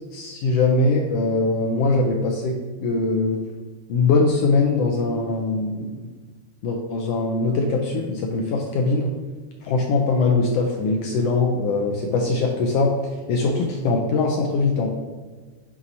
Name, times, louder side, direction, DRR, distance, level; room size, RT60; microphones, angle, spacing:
voice 1, 0.1-2.5 2.8-3.4 3.9-6.0 6.6-9.1 9.6-14.9, left 3 dB, 80° left, 1 dB, 1.4 m, -21 dB
8.7 x 4.1 x 2.7 m, 1.4 s
omnidirectional pair, 3.3 m